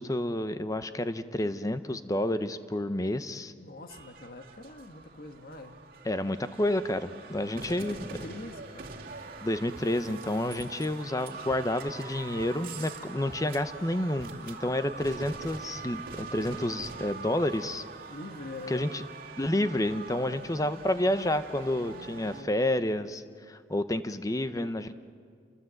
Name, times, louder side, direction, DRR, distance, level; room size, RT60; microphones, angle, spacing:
voice 1, 0.0-3.5 6.1-8.0 9.4-17.8 18.7-19.0 19.4-24.9, left 1 dB, 20° left, 11 dB, 0.8 m, -30 dB
voice 2, 3.6-5.8 7.3-9.0 11.1-11.4 18.1-18.9 20.2-21.1 21.8-22.8, left 2 dB, 55° left, 6 dB, 1.6 m, -45 dB
sound 1, 3.9-22.4, right 4 dB, 50° right, 2.4 m, -44 dB
28.5 x 23.0 x 7.8 m, 2.2 s
head